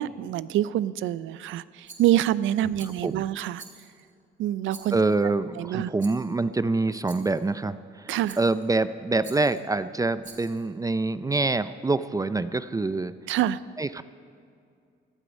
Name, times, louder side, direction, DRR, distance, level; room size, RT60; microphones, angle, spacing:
voice 1, 0.0-3.6 4.4-5.0 5.6-5.9 8.1-8.4 13.3-13.6, right 12 dB, 80° right, 18 dB, 0.4 m, -26 dB
Rattle, 1.9-2.4 2.8-3.1 3.6-4.1 4.7-5.2 6.0-6.3 7.1-7.5 8.3-8.7 9.2-9.6 10.2-10.7, right 4 dB, 40° right, 2.4 m, -48 dB
voice 2, 2.8-3.2 4.9-13.1 13.8-14.0, right 3 dB, 15° right, 13 dB, 0.4 m, -26 dB
17.5 x 12.0 x 5.3 m, 2.3 s
cardioid pair, 90°, 20 cm